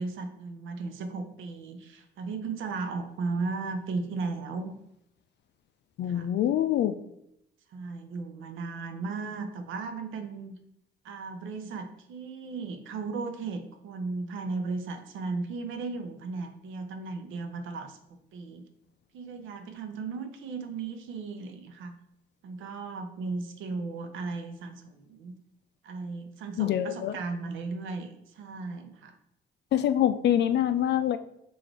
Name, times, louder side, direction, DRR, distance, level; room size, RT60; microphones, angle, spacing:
voice 1, 0.0-4.7 6.1-6.3 7.7-10.6 11.0-18.0 18.3-18.7 19.1-22.0 22.4-25.3 25.8-29.1, right 4 dB, 80° right, 6 dB, 0.6 m, -36 dB
voice 2, 6.0-7.0 26.6-27.2 29.7-31.2, left 11 dB, 60° left, 12 dB, 0.4 m, -25 dB
3.9 x 2.5 x 4.5 m, 0.77 s
cardioid pair, 90°, 20 cm